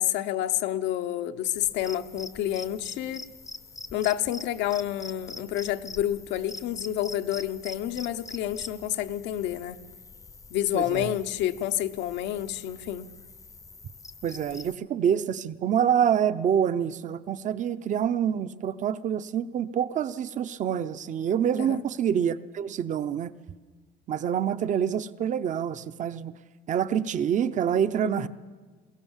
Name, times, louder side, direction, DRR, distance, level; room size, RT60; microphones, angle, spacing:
voice 1, 0.0-3.2 3.9-9.8 10.5-13.1 21.6-21.8 28.0-28.3, left 12 dB, 80° left, 9 dB, 0.9 m, -29 dB
sound 1, 1.5-14.8, left 3 dB, 20° left, 0.6 m, -45 dB
voice 2, 10.7-11.1 14.2-23.3 24.1-26.3 26.7-28.3, right 9 dB, 45° right, 14 dB, 0.7 m, -26 dB
21.5 x 17.0 x 7.3 m, 1.4 s
cardioid pair, 125°, 18 cm